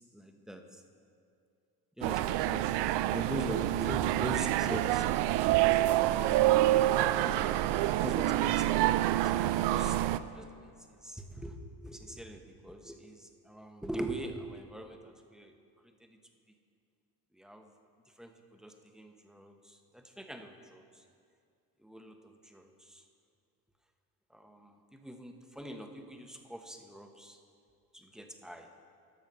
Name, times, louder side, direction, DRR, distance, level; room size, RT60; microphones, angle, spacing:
voice 1, 0.1-0.8 2.0-2.7 3.0-5.0 8.0-10.0 10.3-10.5 11.0-11.6 11.8-15.5 16.0-16.2 17.4-17.7 18.2-18.3 18.6-20.8 21.8-23.0 24.3-27.4 27.9-28.7, right 1 dB, ahead, 4 dB, 1.1 m, -42 dB
sound 1, 2.0-10.2, right 14 dB, 65° right, 0.5 m, -27 dB
13.0 x 6.3 x 5.5 m, 2.3 s
hypercardioid pair, 60°, 45 cm